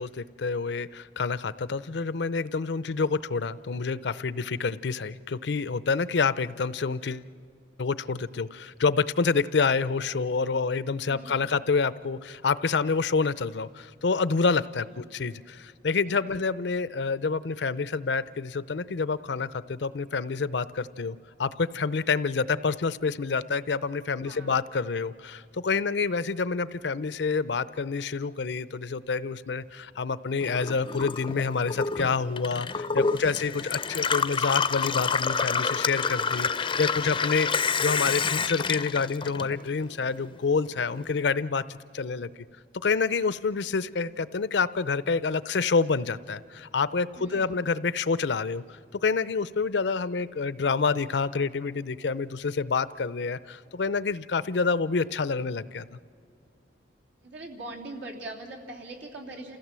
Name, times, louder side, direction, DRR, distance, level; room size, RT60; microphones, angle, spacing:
voice 1, 0.0-7.2 7.8-42.3 42.8-55.9, left 4 dB, 75° left, 17 dB, 0.6 m, -28 dB
voice 2, 11.0-11.5 16.1-16.3 24.2-24.6 33.0-33.4 47.2-47.6 57.2-59.6, right 2 dB, 85° right, -1 dB, 3.2 m, -42 dB
Gurgling / Water tap faucet / Sink (filling or washing), 30.4-39.9 40.2-41.1, left 5 dB, 30° left, 0.5 m, -28 dB
28.5 x 16.0 x 7.5 m, 2.4 s
head